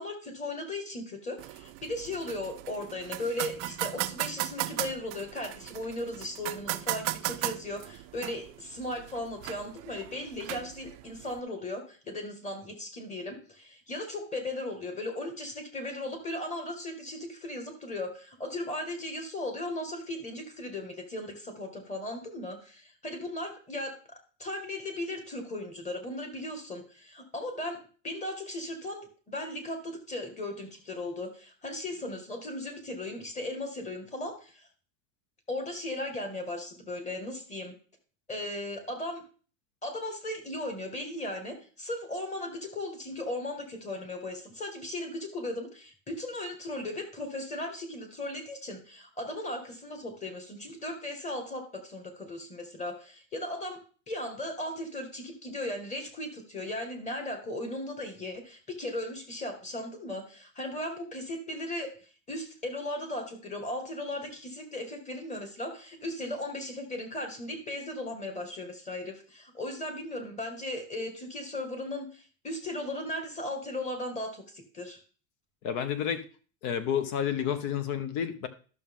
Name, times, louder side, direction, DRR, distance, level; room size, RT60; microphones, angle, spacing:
voice 1, 0.0-34.7 35.5-37.7 38.3-39.2 39.8-53.8 54.1-61.9 62.3-75.0, left 1 dB, 20° left, 5 dB, 2.0 m, -37 dB
sound 1, 1.4-11.4, right 18 dB, 45° right, 0.5 m, -37 dB
voice 2, 75.6-76.2 76.6-78.5, left 8 dB, 50° left, 12 dB, 1.1 m, -30 dB
12.0 x 6.3 x 3.8 m, 0.40 s
supercardioid pair, 140°, 39 cm